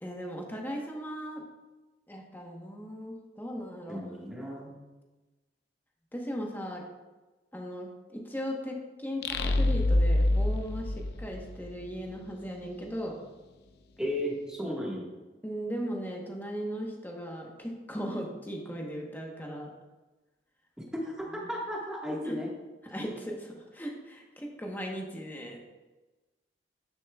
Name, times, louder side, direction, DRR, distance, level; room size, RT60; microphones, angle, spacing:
voice 1, 0.0-1.4 2.1-4.0 6.1-6.8 7.5-13.1 15.4-19.7 22.2-22.4 22.8-25.6, equal, 10° left, 0 dB, 1.0 m, -37 dB
voice 2, 3.9-4.8 14.0-15.1 20.9-22.5, equal, 5° right, -3 dB, 1.5 m, -34 dB
sound 1, 9.2-11.9, left 1 dB, 65° left, 0.5 m, -26 dB
10.5 x 6.9 x 2.3 m, 1.2 s
head